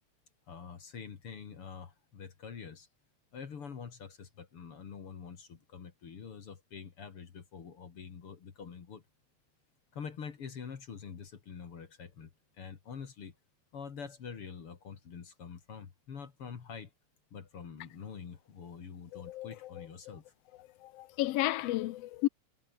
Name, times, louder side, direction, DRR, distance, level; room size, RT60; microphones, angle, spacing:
voice 1, 0.5-2.9 3.3-9.0 9.9-12.3 12.6-13.3 13.7-16.9 17.3-20.2, left 6 dB, 50° left, 2.9 m, -46 dB
voice 2, 19.1-19.9 20.8-22.3, left 16 dB, 75° left, 1.5 m, -33 dB
omnidirectional pair, 3.4 m